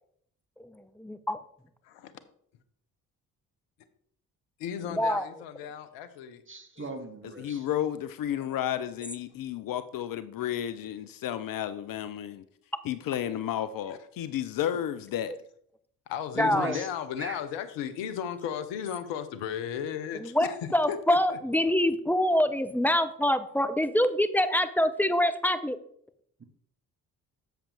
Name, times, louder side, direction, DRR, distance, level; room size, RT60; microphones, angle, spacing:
voice 1, 1.0-1.4 4.9-5.3 16.4-16.8 20.1-20.5 20.7-25.8, left 1 dB, 5° left, 0.7 m, -25 dB
voice 2, 4.6-6.4 6.8-6.9 10.4-10.5 13.9-14.0 16.1-21.4, left 9 dB, 70° left, 0.9 m, -35 dB
voice 3, 6.5-7.7 16.4-16.9 17.2-17.4, right 2 dB, 25° right, 1.2 m, -38 dB
voice 4, 7.4-12.4 12.8-15.4, left 11 dB, 50° left, 0.6 m, -32 dB
7.4 x 7.1 x 3.4 m
hypercardioid pair, 45°, 46 cm